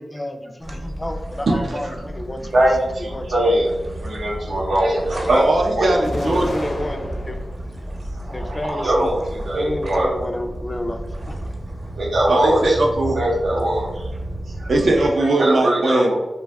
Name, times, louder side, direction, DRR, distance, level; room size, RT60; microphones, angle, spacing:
voice 1, 0.0-2.7 3.1-3.6 5.9-7.4 8.3-9.1 9.5-11.6, left 1 dB, 25° left, 5 dB, 0.3 m, -30 dB
sound 1, 0.6-15.1, right 1 dB, 35° right, 0.7 m, -32 dB
voice 2, 2.5-3.7 4.0-5.4 5.8-5.9 8.2-10.1 12.0-12.8 13.2-14.1 14.6-14.7 15.4-16.2, right 1 dB, 90° right, -3 dB, 0.8 m, -21 dB
voice 3, 5.3-6.5 12.3-13.2 14.7-16.1, right 2 dB, 70° right, 0 dB, 0.4 m, -19 dB
Explosion, 6.0-7.7 8.2-9.1, left 1 dB, 65° left, 0.6 m, -32 dB
2.6 x 2.2 x 3.3 m, 1.1 s
wide cardioid pair, 90°, 0 cm